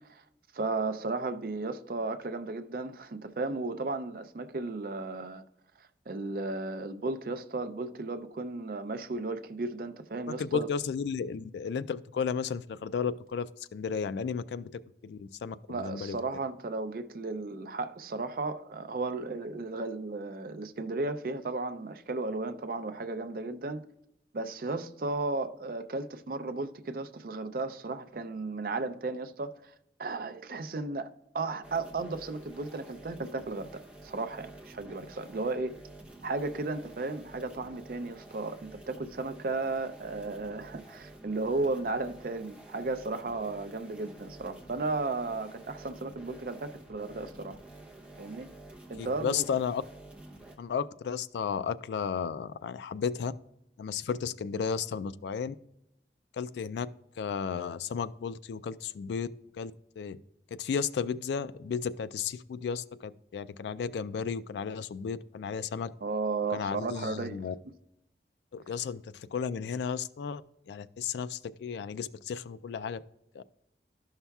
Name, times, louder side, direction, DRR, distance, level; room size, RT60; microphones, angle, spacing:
voice 1, 0.5-5.4 5.8-10.7 15.7-23.8 24.3-29.7 30.0-31.1 31.3-35.7 36.2-47.6 48.2-48.5 48.9-49.4 66.0-67.4, right 3 dB, 55° right, 0.5 m, -34 dB
voice 2, 10.3-16.2 49.0-49.8 50.6-53.3 53.8-55.5 56.3-56.9 57.2-59.3 59.5-60.2 60.5-65.9 66.5-67.5 68.5-70.4 70.7-73.0 73.3-73.4, left 6 dB, 75° left, 0.3 m, -34 dB
sound 1, 31.6-50.6, right 2 dB, 5° right, 0.7 m, -50 dB
12.5 x 5.6 x 2.3 m
head